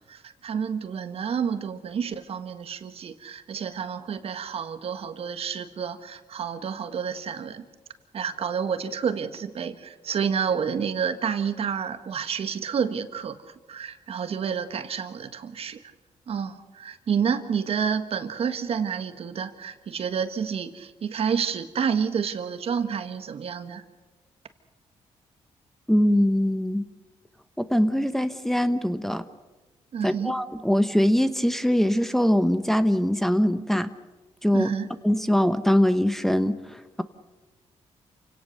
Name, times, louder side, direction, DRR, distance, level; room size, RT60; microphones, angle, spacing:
voice 1, 0.1-7.6 8.1-13.4 13.7-15.8 16.3-23.8 29.9-30.3 34.5-34.9, right 7 dB, 60° right, 10 dB, 1.5 m, -29 dB
voice 2, 25.9-26.8 27.6-29.2 30.0-33.9 34.4-34.7 35.0-37.0, equal, 5° left, 9 dB, 1.0 m, -22 dB
28.0 x 17.5 x 6.6 m, 1.2 s
cardioid pair, 95°, 11 cm